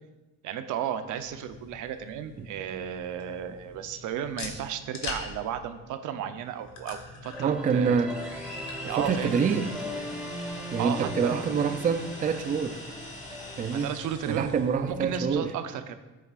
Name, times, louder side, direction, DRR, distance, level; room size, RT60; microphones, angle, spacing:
voice 1, 0.4-8.0 8.8-9.4 10.8-11.6 13.7-14.5 14.8-16.0, right 9 dB, 75° right, 9 dB, 0.8 m, -34 dB
sound 1, 1.0-15.3, left 5 dB, 70° left, 1.7 m, -46 dB
sound 2, 7.3-13.9, left 1 dB, 5° right, 1.3 m, -39 dB
voice 2, 7.4-8.2 9.0-9.7 10.7-12.8 13.6-13.9 14.3-15.5, right 6 dB, 25° right, 9 dB, 0.5 m, -26 dB
sound 3, 8.1-14.8, left 1 dB, 25° left, 2.5 m, -43 dB
14.0 x 8.4 x 2.5 m, 1.1 s
cardioid pair, 150°, 30 cm